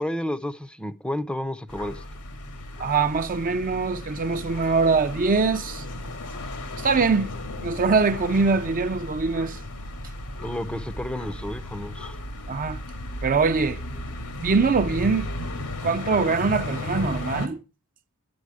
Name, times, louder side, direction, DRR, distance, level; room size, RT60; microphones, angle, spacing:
voice 1, 0.0-2.0 10.4-12.2, left 1 dB, 5° left, 0.6 m, -31 dB
sound 1, 1.7-17.5, left 1 dB, 85° left, 2.2 m, -34 dB
voice 2, 2.8-5.8 6.8-7.3 7.6-9.6 12.5-12.8 13.2-13.8 14.4-15.3 15.8-17.6, right 4 dB, 40° right, 0.6 m, -23 dB
11.0 x 9.5 x 4.9 m
head